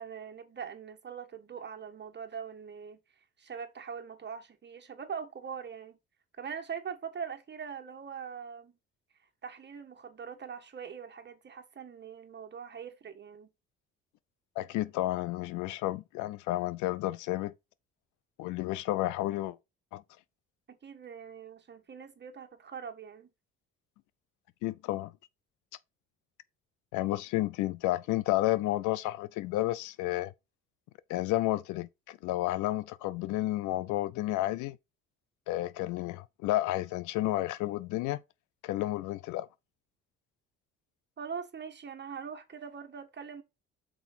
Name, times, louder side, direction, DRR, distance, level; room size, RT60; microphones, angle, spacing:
voice 1, 0.0-3.0 3.4-6.0 6.4-8.8 9.4-13.5 20.7-23.3 41.2-43.4, right 7 dB, 35° right, 1.4 m, -42 dB
voice 2, 14.6-17.5 18.4-19.6 19.9-20.0 24.6-25.1 26.9-30.3 31.1-34.8 35.5-38.2 38.6-39.5, left 16 dB, 80° left, 0.5 m, -31 dB
6.1 x 4.6 x 4.2 m
cardioid pair, 85°, 30 cm